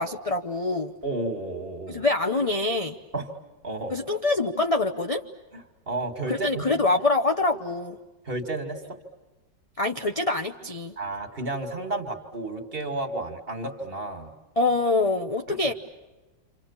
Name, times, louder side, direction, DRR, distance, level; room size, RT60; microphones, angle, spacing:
voice 1, 0.0-0.9 1.9-3.0 3.9-5.2 6.3-8.0 9.8-10.9 14.6-15.7, left 2 dB, 35° left, 3 dB, 0.5 m, -25 dB
voice 2, 1.0-2.0 3.1-3.3 3.6-3.9 5.5-6.6 8.3-8.8 11.0-14.3 15.5-15.7, right 2 dB, 30° right, 5 dB, 2.4 m, -32 dB
29.0 x 26.5 x 7.3 m, 1.1 s
omnidirectional pair, 2.0 m